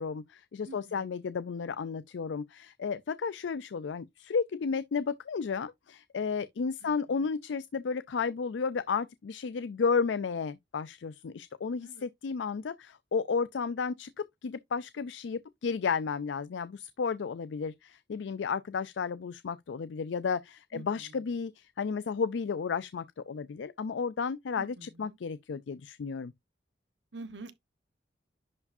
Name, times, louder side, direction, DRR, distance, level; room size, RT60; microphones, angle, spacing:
voice 1, 0.0-14.1 14.4-26.3, left 5 dB, 90° left, 0.4 m, -33 dB
voice 2, 0.6-1.1 6.8-6.9 11.8-12.1 20.7-20.8 24.6-25.2 27.1-27.5, right 3 dB, 85° right, 1.2 m, -46 dB
10.5 x 4.8 x 2.6 m
head